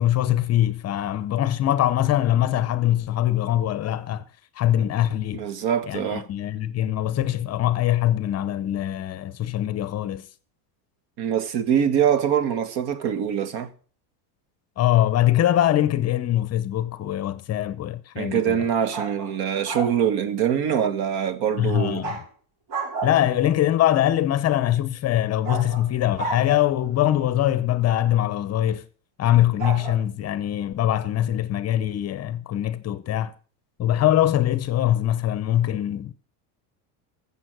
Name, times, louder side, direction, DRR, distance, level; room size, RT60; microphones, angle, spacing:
voice 1, 0.0-4.2 4.6-5.4 5.9-10.3 14.8-18.7 21.6-22.2 23.0-28.8 29.2-33.3 33.8-36.1, left 12 dB, 35° left, 0.8 m, -23 dB
voice 2, 5.3-6.3 11.2-13.7 18.2-22.0, right 9 dB, 55° right, 1.5 m, -24 dB
sound 1, 18.9-20.0 22.0-22.2 22.7-23.4 25.4-26.9 29.6-29.9, right 3 dB, 90° right, 5.8 m, -32 dB
14.5 x 7.3 x 6.1 m
cardioid pair, 140°, 46 cm